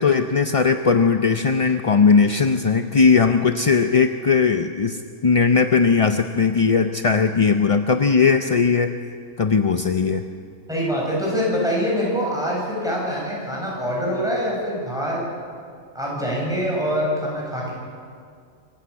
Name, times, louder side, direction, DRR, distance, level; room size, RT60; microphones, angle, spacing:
voice 1, 0.0-9.0 9.4-10.2, left 5 dB, 40° left, 7 dB, 0.5 m, -18 dB
voice 2, 10.7-15.3 15.9-17.7, equal, 5° right, -4 dB, 7.6 m, -24 dB
25.5 x 14.5 x 8.4 m, 2.2 s
omnidirectional pair, 1.4 m